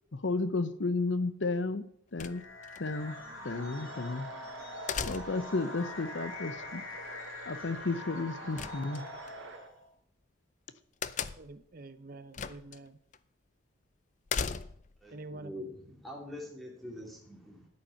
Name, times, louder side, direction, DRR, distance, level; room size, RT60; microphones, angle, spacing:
voice 1, 0.1-1.8 2.1-2.4 2.8-3.2 3.4-4.3 5.1-6.8 7.5-9.0, left 3 dB, 65° left, 13 dB, 0.8 m, -32 dB
sound 1, 2.2-9.8, left 2 dB, 85° left, 2.5 m, -44 dB
sound 2, 2.2-2.8 4.9-5.6 8.6-9.3 11.0-11.6 12.3-12.8 13.1-13.2 14.3-15.0, left 6 dB, 35° left, 0.4 m, -36 dB
sound 3, 2.9-9.7, right 3 dB, 70° right, 1.6 m, -48 dB
voice 2, 11.4-13.0 15.1-15.5, right 2 dB, 45° right, 11 dB, 0.7 m, -47 dB
voice 3, 15.0-17.7, left 1 dB, ahead, -2 dB, 2.9 m, -44 dB
11.0 x 8.6 x 5.8 m, 0.71 s
head